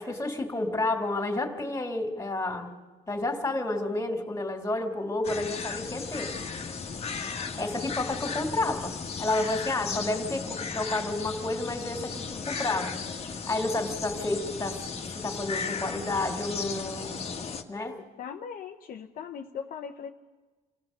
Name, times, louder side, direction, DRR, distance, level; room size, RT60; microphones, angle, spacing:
voice 1, 0.0-2.7 3.1-6.3 7.5-13.0 13.5-17.2 17.7-18.0, left 2 dB, 15° left, 4 dB, 3.0 m, -30 dB
sound 1, 5.2-17.6, left 5 dB, 35° left, 1.6 m, -35 dB
voice 2, 18.2-20.1, left 7 dB, 55° left, 3 dB, 1.0 m, -39 dB
27.0 x 16.0 x 6.7 m, 1.3 s
cardioid pair, 110°, 17 cm